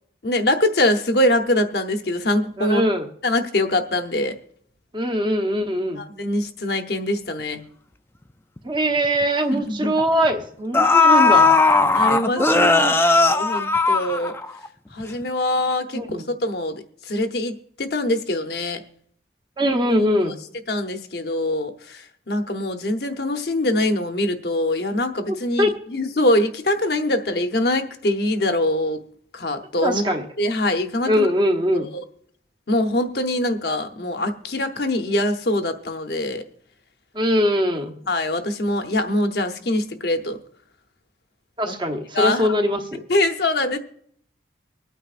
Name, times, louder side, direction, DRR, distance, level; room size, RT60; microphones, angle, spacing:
voice 1, 0.2-2.8 3.2-4.3 6.0-7.6 9.5-10.1 11.9-12.7 13.3-14.4 14.9-18.8 20.2-20.3 20.7-29.0 29.3-30.1 30.4-31.3 31.8-32.0 32.7-36.4 38.1-40.4 41.7-41.8 42.1-42.6 42.9-43.8, left 1 dB, 55° left, 6 dB, 0.9 m, -23 dB
voice 2, 2.6-3.1 4.9-6.0 8.6-11.5 12.4-13.0 15.9-16.3 19.6-20.3 25.3-25.7 29.8-30.2 31.1-31.9 37.1-37.9 41.6-43.0, equal, 25° right, 4 dB, 1.1 m, -22 dB
sound 1, 8.6-8.7 9.0-9.2 10.2-10.3 10.7-14.7 15.0-15.1, left 3 dB, 10° left, 0.3 m, -17 dB
24.5 x 9.1 x 2.5 m, 0.66 s
head